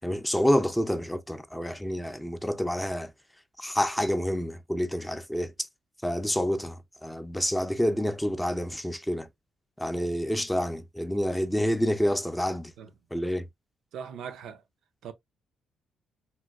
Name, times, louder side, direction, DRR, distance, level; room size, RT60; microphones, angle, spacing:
voice 1, 0.0-3.1 3.6-5.5 6.0-9.3 9.8-12.7 13.1-13.5, equal, 5° left, 0.3 m, -28 dB
voice 2, 13.9-14.6 15.0-15.1, right 7 dB, 75° right, 0.5 m, -39 dB
3.1 x 2.5 x 2.3 m
cardioid pair, 90°, 0 cm